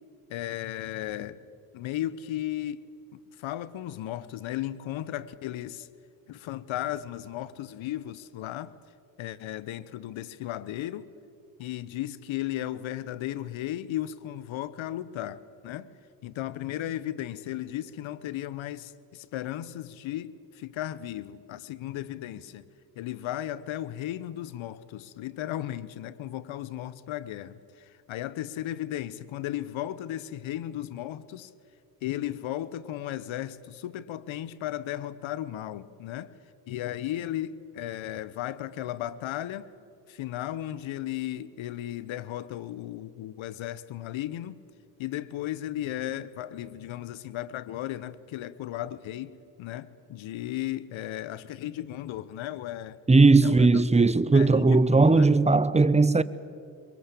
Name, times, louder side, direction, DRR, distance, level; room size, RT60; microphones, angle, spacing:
voice 1, 0.3-1.4 1.7-2.8 3.1-5.9 6.3-8.7 9.2-11.1 11.6-15.9 16.2-22.6 23.0-31.5 32.0-36.3 36.7-39.7 40.1-44.6 45.0-49.3 49.6-53.0 53.4-53.8 54.3-55.3, left 13 dB, 70° left, 1.1 m, -35 dB
voice 2, 53.1-56.2, right 3 dB, 15° right, 0.9 m, -18 dB
22.5 x 19.5 x 8.5 m
supercardioid pair, 55°, 49 cm